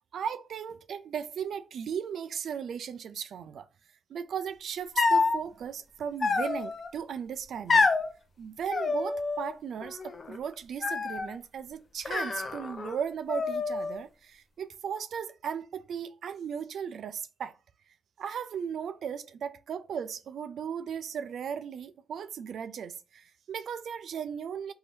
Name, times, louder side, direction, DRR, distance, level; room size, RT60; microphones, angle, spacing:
voice 1, 0.1-3.7 4.1-7.9 8.4-17.6 18.2-24.7, right 7 dB, 80° right, 0.3 m, -36 dB
sound 1, 5.0-5.4 6.2-6.9 7.7-8.1 8.7-9.5 9.8-10.4 10.8-11.4 12.1-13.0 13.3-14.0, left 4 dB, 45° left, 0.6 m, -27 dB
2.7 x 2.7 x 3.2 m
cardioid pair, 75°, 0 cm